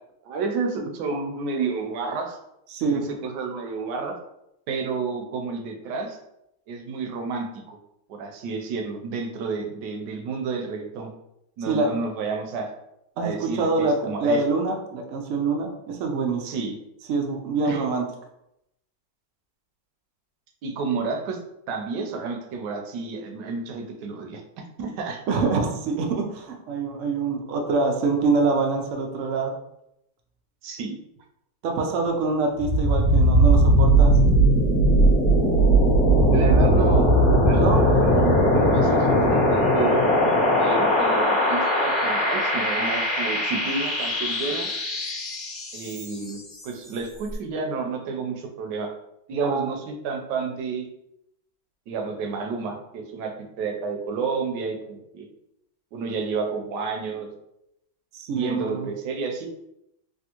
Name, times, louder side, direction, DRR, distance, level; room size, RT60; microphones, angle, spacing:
voice 1, 0.2-2.4 2.9-4.1 4.7-6.2 6.7-7.8 8.1-11.1 11.6-12.7 13.2-14.4 16.4-16.8 17.6-17.8 20.6-21.4 21.7-24.4 24.8-25.2 30.6-31.0 36.3-37.2 37.4-40.0 40.6-44.7 45.7-48.9 49.3-50.9 51.9-55.3 55.9-57.3 58.3-59.5, right 4 dB, 75° right, 3 dB, 1.1 m, -30 dB
voice 2, 2.7-3.1 11.7-11.9 13.2-16.5 17.1-18.0 25.3-29.5 31.6-34.1 37.5-37.8 49.4-49.7 58.1-58.9, right 3 dB, 90° right, 2 dB, 0.6 m, -25 dB
sound 1, 32.6-46.4, right 1 dB, 45° left, 1.0 m, -19 dB
3.4 x 2.4 x 2.8 m, 0.81 s
omnidirectional pair, 2.0 m